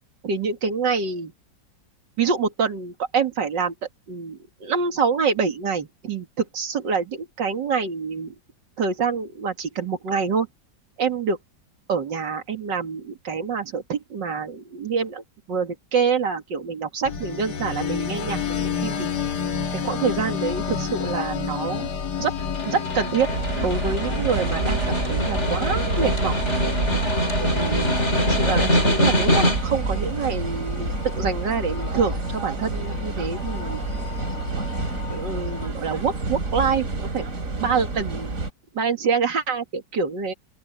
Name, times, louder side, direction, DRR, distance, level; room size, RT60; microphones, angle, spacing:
voice 1, 0.2-1.3 2.2-3.7 4.1-8.3 8.8-10.5 11.0-11.4 11.9-15.2 15.5-19.1 19.8-21.9 22.2-22.3 22.6-23.3 23.6-26.4 27.4-33.8 35.1-36.8 37.1-37.3 37.6-38.3 38.7-40.3, right 5 dB, 75° right, 2.7 m, -26 dB
sound 1, 17.0-35.7, left 6 dB, 65° left, 2.1 m, -31 dB
Snare drum, 22.4-29.9, equal, 35° left, 4.9 m, -24 dB
sound 2, 23.3-38.5, right 3 dB, 45° right, 3.2 m, -28 dB
open air
omnidirectional pair, 1.9 m